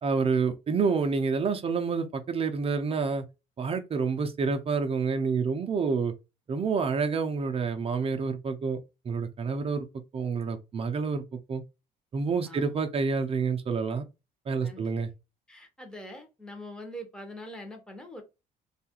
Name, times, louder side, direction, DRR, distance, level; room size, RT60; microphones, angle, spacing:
voice 1, 0.0-3.2 3.6-6.1 6.5-8.8 9.0-9.9 10.1-11.2 11.5-11.6 12.1-14.0 14.5-15.1, right 5 dB, 35° right, 0.5 m, -28 dB
voice 2, 12.4-12.7 14.6-14.9 15.5-18.2, equal, 5° left, 0.8 m, -43 dB
2.8 x 2.4 x 2.8 m
cardioid pair, 110°, 17 cm